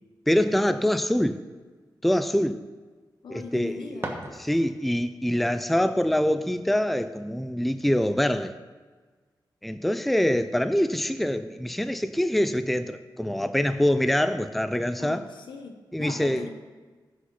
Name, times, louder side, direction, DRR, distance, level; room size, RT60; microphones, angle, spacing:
voice 1, 0.3-1.4 2.0-2.6 3.3-4.0 4.4-8.6 9.6-15.2 15.9-16.5, left 1 dB, ahead, 11 dB, 0.4 m, -25 dB
voice 2, 3.2-4.2 15.0-16.5, left 4 dB, 85° left, 5 dB, 1.4 m, -40 dB
sound 1, 3.5-5.0, right 2 dB, 30° right, 1.4 m, -38 dB
15.0 x 6.4 x 5.8 m, 1.4 s
wide cardioid pair, 130°, 8 cm